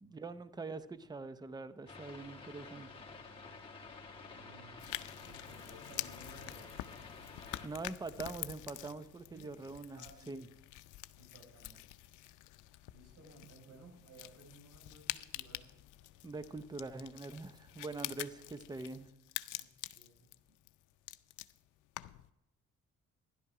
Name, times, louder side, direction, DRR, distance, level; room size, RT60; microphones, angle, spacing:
voice 1, 0.0-3.0 7.6-10.5 16.2-19.1, right 3 dB, 15° right, 13 dB, 0.6 m, -44 dB
sound 1, 1.9-7.7, left 4 dB, 20° left, 2.1 m, -51 dB
voice 2, 4.3-4.8 5.2-6.8 9.3-9.5 9.9-10.5 11.2-11.9 12.9-15.7 19.6-20.3, right 2 dB, 60° right, 2 dB, 5.1 m, -58 dB
sound 2, 4.8-22.3, left 16 dB, 80° left, 0.5 m, -47 dB
12.0 x 11.0 x 4.8 m, 0.86 s
cardioid pair, 90°, 30 cm